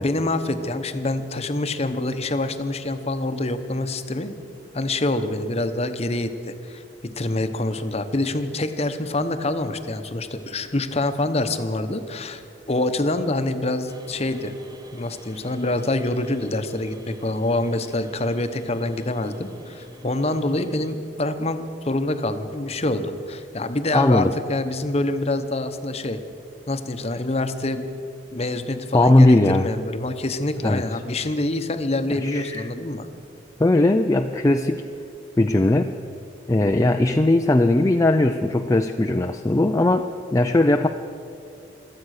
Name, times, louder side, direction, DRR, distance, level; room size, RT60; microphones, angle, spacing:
voice 1, 0.0-4.3 4.7-12.4 12.7-14.5 14.9-26.2 26.7-27.9 28.3-33.1, left 2 dB, 35° left, 9 dB, 0.9 m, -26 dB
sound 1, 13.9-20.9, equal, 20° right, 1.0 m, -47 dB
voice 2, 23.9-24.3 28.9-29.7 30.6-30.8 32.1-32.7 33.6-34.8 35.4-35.9 36.5-40.9, left 2 dB, 15° left, 5 dB, 0.4 m, -19 dB
25.5 x 8.7 x 6.5 m, 2.6 s
head